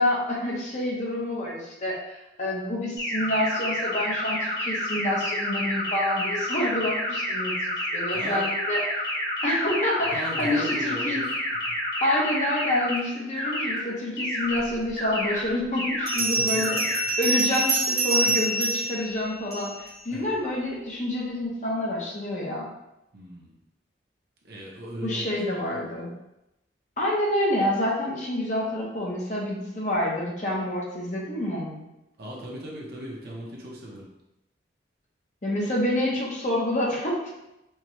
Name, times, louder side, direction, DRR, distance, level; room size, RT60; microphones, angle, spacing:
voice 1, 0.0-9.1 9.4-11.2 12.0-22.7 25.0-26.1 27.0-31.8 35.4-37.3, left 1 dB, 40° left, -4 dB, 0.8 m, -28 dB
sound 1, 3.0-13.0 13.4-13.8 14.2-14.6 15.0-15.4 15.8-16.2 16.6-17.0, equal, 70° left, 1.2 m, -29 dB
voice 2, 8.1-8.5 10.0-11.3 11.7-11.8 16.2-16.8 18.2-18.4 20.1-20.2 23.1-23.5 24.4-25.2 25.5-26.1 32.2-34.1, right 1 dB, 55° right, -3 dB, 0.8 m, -38 dB
Bell, 14.8-14.9 16.1-19.9, right 2 dB, 40° right, 1.1 m, -26 dB
4.6 x 2.3 x 3.1 m, 0.92 s
head